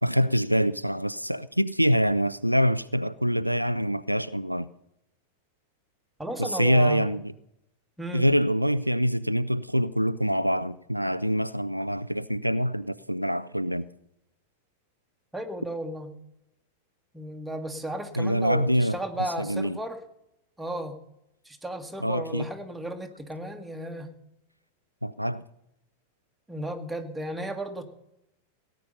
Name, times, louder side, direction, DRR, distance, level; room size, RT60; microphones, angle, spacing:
voice 1, 0.0-4.7 6.4-7.3 8.1-13.9 18.2-19.0 19.4-19.8 22.0-22.5 25.0-25.4, equal, 90° right, 0.4 m, -25 dB
voice 2, 6.2-7.1 8.0-8.3 15.3-16.1 17.1-20.0 20.6-20.9 21.4-24.1 26.5-27.8, right 1 dB, 5° right, 1.7 m, -34 dB
17.5 x 9.7 x 5.4 m
figure-of-eight pair, 90°, 0 cm